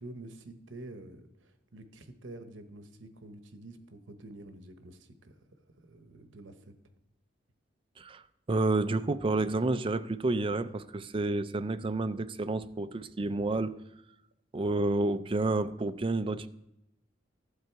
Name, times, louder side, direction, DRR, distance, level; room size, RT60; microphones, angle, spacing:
voice 1, 0.0-5.4 5.8-6.8, right 2 dB, 85° right, 9 dB, 1.0 m, -48 dB
voice 2, 8.5-13.8 14.5-16.5, right 2 dB, 30° right, 11 dB, 0.4 m, -30 dB
12.0 x 7.8 x 4.6 m, 0.84 s
head